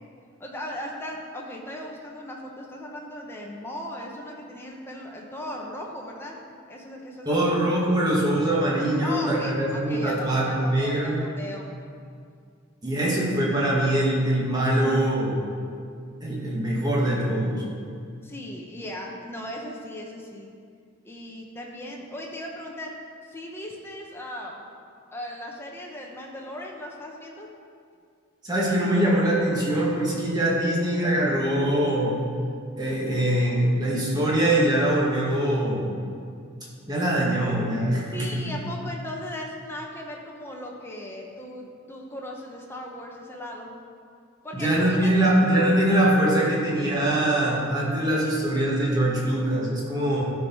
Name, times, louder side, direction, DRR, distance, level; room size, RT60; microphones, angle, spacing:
voice 1, 0.4-7.4 9.0-11.7 18.2-20.5 21.0-22.9 23.3-24.7 25.1-27.5 38.1-43.7 44.4-45.3, left 1 dB, 10° left, -1 dB, 1.0 m, -37 dB
voice 2, 7.3-11.2 12.8-15.5 16.2-17.6 28.4-32.2 32.8-35.9 36.9-38.6 44.5-50.2, right 1 dB, 20° right, -5 dB, 1.9 m, -23 dB
13.0 x 4.8 x 5.5 m, 2.2 s
head